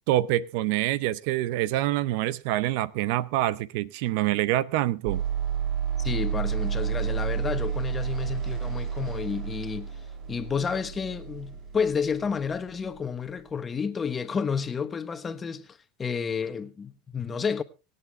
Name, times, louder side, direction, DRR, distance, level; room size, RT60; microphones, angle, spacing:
voice 1, 0.1-5.2, right 15 dB, 65° right, 0.6 m, -26 dB
Deep Sweep, 5.1-13.2, right 8 dB, 45° right, 2.9 m, -31 dB
voice 2, 6.0-10.0 10.3-17.6, left 6 dB, 20° left, 1.3 m, -30 dB
25.0 x 8.4 x 3.5 m
hypercardioid pair, 110°, 0 cm